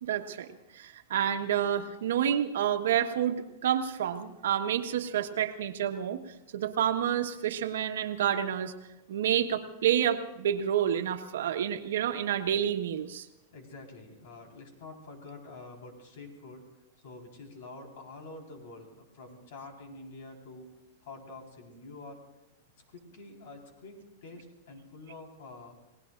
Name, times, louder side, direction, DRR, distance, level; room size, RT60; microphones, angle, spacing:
voice 1, 0.0-6.2 6.5-8.7 9.1-13.3, right 9 dB, 85° right, 6 dB, 1.3 m, -29 dB
voice 2, 13.5-16.6 17.0-20.7 21.0-22.2 22.9-25.8, left 3 dB, 65° left, 1 dB, 4.6 m, -47 dB
30.0 x 18.5 x 2.6 m, 0.96 s
supercardioid pair, 150°, 0 cm